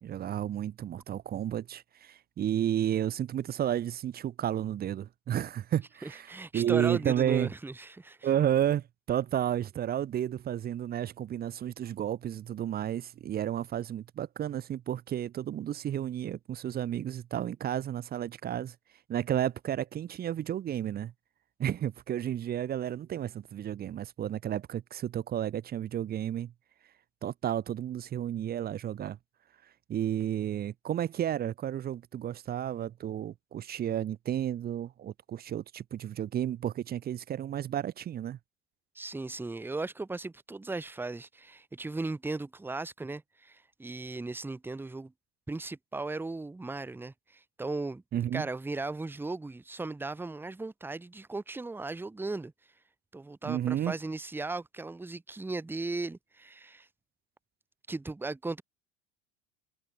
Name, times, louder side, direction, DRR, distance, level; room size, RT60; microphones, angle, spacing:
voice 1, 0.0-7.5 8.2-18.8 19.1-21.1 21.6-26.5 27.2-29.2 29.9-38.4 48.1-48.5 53.4-53.9, right 10 dB, 25° right, 0.6 m, -32 dB
voice 2, 6.0-8.3 38.9-45.1 45.5-48.0 48.3-52.5 53.1-56.9 57.9-58.6, right 3 dB, 5° right, 0.9 m, -37 dB
cardioid pair, 145°, 39 cm